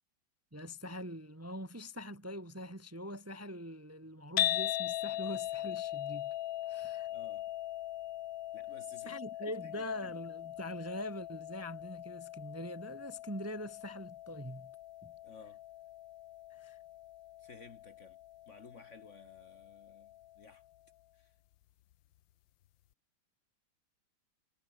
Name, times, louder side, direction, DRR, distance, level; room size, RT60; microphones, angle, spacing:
voice 1, 0.5-6.3 6.6-7.1 9.0-14.7 15.0-15.1 16.5-16.8, left 1 dB, 10° right, 1.2 m, -43 dB
sound 1, 4.4-20.6, left 14 dB, 70° left, 1.4 m, -40 dB
voice 2, 7.1-7.5 8.5-10.2 15.2-15.6 17.4-18.2 18.5-20.6 21.1-21.3, left 4 dB, 40° left, 1.6 m, -56 dB
omnidirectional pair, 2.3 m